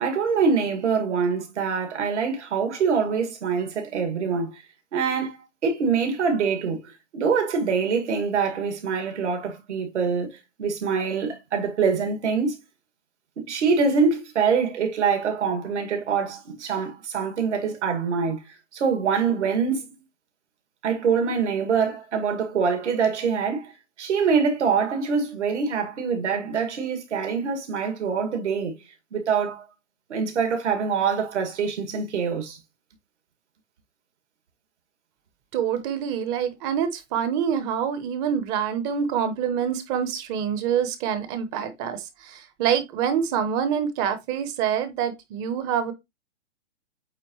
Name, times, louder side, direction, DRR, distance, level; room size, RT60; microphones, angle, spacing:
voice 1, 0.0-4.6 4.9-6.8 7.1-12.6 13.5-18.4 18.7-19.9 20.8-23.7 24.0-28.8 29.1-29.7 30.1-32.6, right 5 dB, 70° right, 2.2 m, -24 dB
voice 2, 35.5-45.9, right 8 dB, 25° right, 0.9 m, -26 dB
8.4 x 3.7 x 3.1 m
hypercardioid pair, 140°, 36 cm